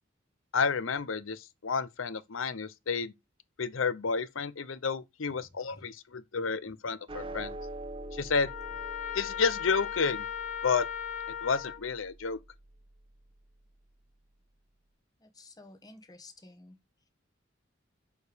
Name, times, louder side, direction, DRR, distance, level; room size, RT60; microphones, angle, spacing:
voice 1, 0.5-3.1 3.6-7.6 8.1-8.5 9.1-10.3 10.6-10.9 11.4-12.4, left 5 dB, 85° left, 0.7 m, -30 dB
sound 1, 7.1-13.6, right 1 dB, 25° right, 0.8 m, -45 dB
Trumpet, 8.4-11.8, left 8 dB, 40° left, 1.2 m, -37 dB
voice 2, 15.2-16.8, left 2 dB, 20° left, 1.2 m, -52 dB
6.5 x 5.0 x 5.0 m
head